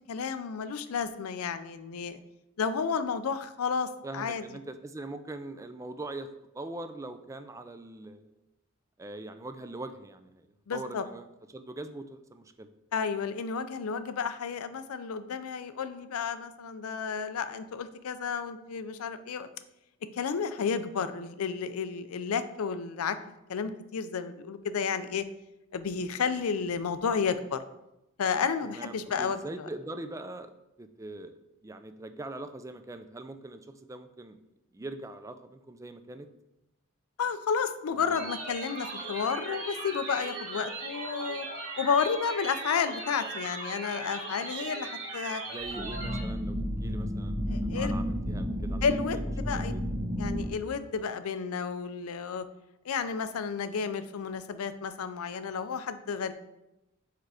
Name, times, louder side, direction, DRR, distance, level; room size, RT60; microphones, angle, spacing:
voice 1, 0.1-2.2 2.6-4.4 10.7-11.0 12.9-19.5 20.1-23.2 23.5-25.3 25.7-27.6 28.2-29.7 37.2-41.5 41.8-45.4 47.5-47.9 48.8-49.7 50.2-52.4 52.8-56.3, left 6 dB, 90° left, 11 dB, 0.5 m, -31 dB
voice 2, 4.0-6.3 6.5-8.4 9.0-12.7 28.6-30.5 30.8-34.4 34.7-36.3 38.0-38.2 45.5-47.4 47.7-48.8 49.1-49.2 49.5-49.8, right 2 dB, 15° right, 9 dB, 0.3 m, -42 dB
sound 1, 38.1-46.2, right 3 dB, 85° right, 1.8 m, -38 dB
sound 2, 45.6-50.5, equal, 30° right, 1.3 m, -32 dB
4.8 x 4.5 x 4.8 m, 0.92 s
head